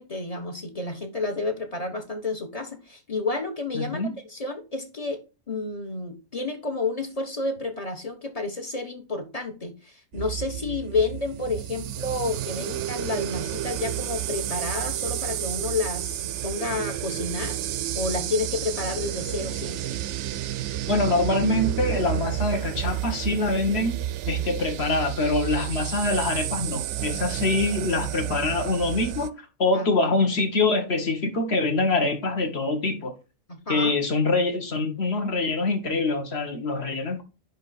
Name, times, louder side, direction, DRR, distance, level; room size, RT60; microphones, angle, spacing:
voice 1, 0.0-4.0 4.3-5.2 5.5-17.6 17.9-20.0 29.7-29.9 33.5-34.0, left 3 dB, 30° left, 1.2 m, -30 dB
voice 2, 3.7-4.1 20.9-24.0 24.3-29.3 29.6-33.1 33.7-37.2, left 2 dB, 50° left, 1.7 m, -24 dB
sound 1, 10.1-29.3, right 12 dB, 65° right, 0.8 m, -31 dB
10.0 x 3.6 x 4.2 m
omnidirectional pair, 1.5 m